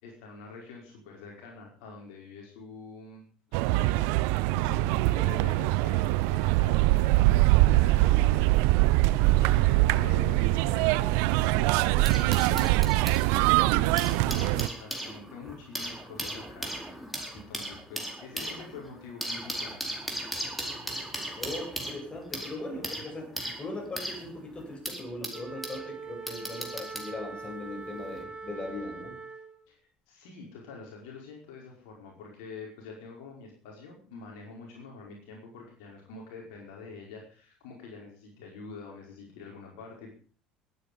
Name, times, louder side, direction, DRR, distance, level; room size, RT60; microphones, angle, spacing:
voice 1, 0.0-3.2 3.5-8.7 9.1-17.0 17.3-19.8 29.7-29.8 30.1-40.1, left 4 dB, 65° left, 0 dB, 5.1 m, -46 dB
sound 1, 3.5-14.7, right 19 dB, 65° right, 0.7 m, -23 dB
sound 2, 11.6-13.2 13.8-25.8 26.3-27.1 28.0-28.2, right 1 dB, ahead, 4.6 m, -37 dB
voice 2, 21.3-29.2, left 2 dB, 25° left, 3 dB, 7.6 m, -39 dB
Wind instrument woodwind instrument, 25.3-29.7, right 4 dB, 20° right, 4.4 m, -42 dB
21.5 x 10.0 x 5.4 m, 0.42 s
hypercardioid pair, 65°, 4 cm